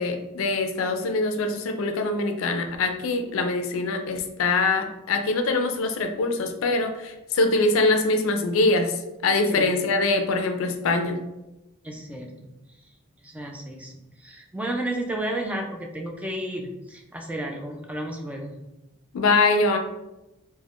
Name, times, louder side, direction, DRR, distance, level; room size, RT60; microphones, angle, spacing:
voice 1, 0.0-11.2 19.1-19.8, left 3 dB, 80° left, 5 dB, 0.4 m, -23 dB
voice 2, 11.8-12.5 13.2-13.9 14.2-18.5, right 1 dB, 5° right, 1 dB, 0.3 m, -32 dB
3.4 x 2.1 x 2.4 m, 0.96 s
head